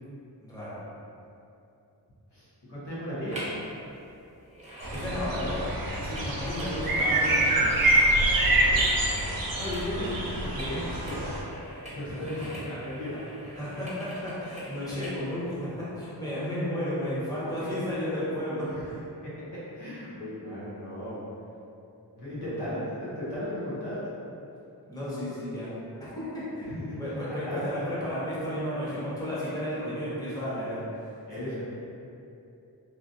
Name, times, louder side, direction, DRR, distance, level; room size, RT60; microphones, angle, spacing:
voice 1, 0.4-0.7 4.9-5.7 6.0-7.7 12.1-12.2 13.6-19.0 22.4-22.7 24.9-25.7 26.0-30.8 31.4-31.6, equal, 10° left, -10 dB, 1.1 m, -33 dB
voice 2, 2.3-3.5 5.0-5.3 8.4-8.9 9.5-11.3 11.9-13.1 13.4-13.7 18.0-18.2 18.6-18.8 19.2-19.3 19.7-21.2 22.2-24.0 26.6-27.0 27.3-28.0 31.3-31.6, left 1 dB, 80° left, -11 dB, 1.1 m, -36 dB
sound 1, 3.3-3.6 3.9-15.2 15.7-15.8, equal, 15° right, 0.9 m, -43 dB
sound 2, 4.8-11.4, right 1 dB, 60° right, 0.6 m, -26 dB
3.0 x 2.4 x 2.6 m, 2.7 s
cardioid pair, 40°, 40 cm